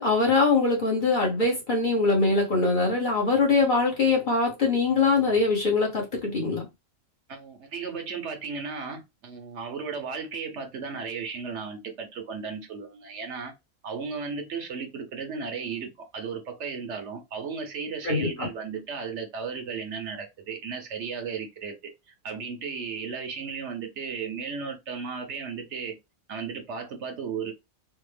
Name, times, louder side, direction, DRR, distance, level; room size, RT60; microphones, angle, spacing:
voice 1, 0.0-6.7 18.0-18.5, left 3 dB, 40° left, 1.0 m, -23 dB
voice 2, 7.3-13.5 13.8-26.0 26.3-27.5, right 5 dB, 65° right, 0.9 m, -35 dB
3.4 x 2.0 x 3.2 m
omnidirectional pair, 1.4 m